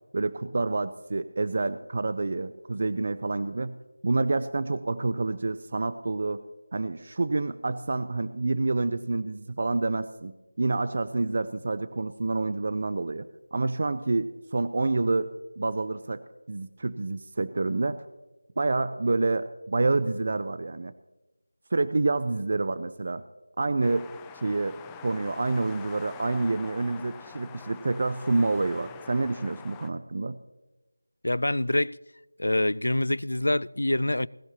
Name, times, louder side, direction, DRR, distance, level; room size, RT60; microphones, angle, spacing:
voice 1, 0.1-3.7 4.0-6.4 6.7-15.3 15.6-16.2 16.5-18.0 18.6-20.9 21.7-23.2 23.6-24.1 24.3-30.4, right 3 dB, 45° right, 0.5 m, -28 dB
sound 1, 23.8-29.9, left 7 dB, 10° left, 0.5 m, -45 dB
voice 2, 31.2-32.0 32.4-34.3, left 1 dB, 80° left, 0.4 m, -25 dB
21.0 x 12.0 x 2.9 m
figure-of-eight pair, 170°, 0 cm